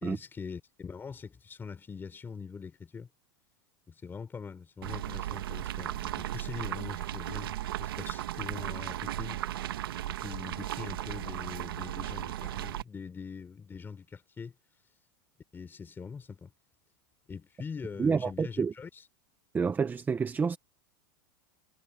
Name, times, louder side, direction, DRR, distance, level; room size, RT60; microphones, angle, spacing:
voice 1, 0.0-3.1 3.9-9.4 10.2-14.6 15.5-16.5 17.3-19.1, left 5 dB, 20° left, 3.6 m, -43 dB
sound 1, 4.8-12.8, right 13 dB, 90° right, 1.5 m, -36 dB
voice 2, 18.0-18.7 19.5-20.6, right 5 dB, 15° right, 0.7 m, -28 dB
supercardioid pair, 130°, 12 cm